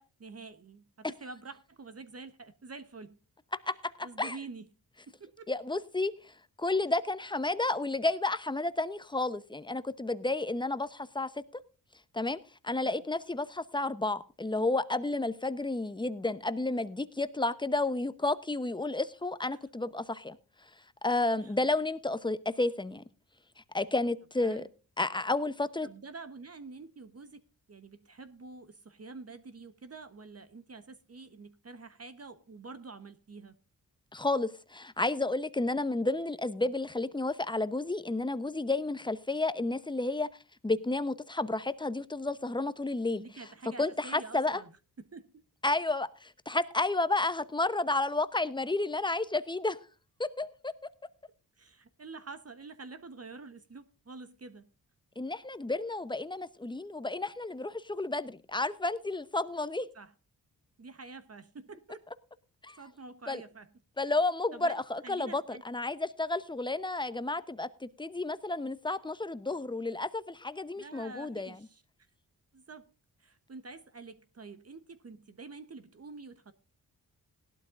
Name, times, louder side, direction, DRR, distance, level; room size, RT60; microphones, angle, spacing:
voice 1, 0.0-3.2 4.0-4.7 5.1-5.5 12.8-13.0 19.5-19.6 21.4-21.5 24.4-24.7 25.8-27.4 27.7-33.5 43.2-44.7 45.0-45.3 51.6-54.7 59.9-60.1 60.8-62.0 62.8-63.7 64.5-65.6 70.8-71.8 72.5-72.9 73.2-76.5, right 4 dB, 40° right, 1.1 m, -47 dB
voice 2, 3.7-4.4 5.5-6.1 6.6-11.4 12.1-12.4 12.6-20.4 21.0-23.0 23.7-24.6 25.0-25.9 34.1-40.3 40.6-43.2 43.8-44.6 45.6-49.8 50.2-50.7 55.2-59.9 62.6-62.8 63.3-63.4 64.0-71.6, left 2 dB, 10° left, 0.8 m, -31 dB
17.0 x 12.0 x 2.5 m
cardioid pair, 50°, 39 cm